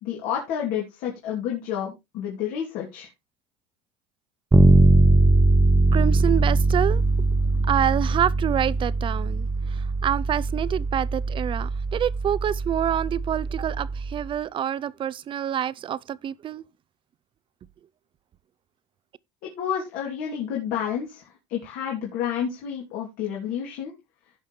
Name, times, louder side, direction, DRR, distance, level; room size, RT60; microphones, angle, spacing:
voice 1, 0.0-3.1 19.6-23.9, left 9 dB, 70° left, 2.9 m, -30 dB
Bass guitar, 4.5-14.3, right 2 dB, 15° right, 0.9 m, -21 dB
voice 2, 5.9-16.6, right 10 dB, 35° right, 0.5 m, -27 dB
16.5 x 5.6 x 3.2 m
cardioid pair, 125°, 15 cm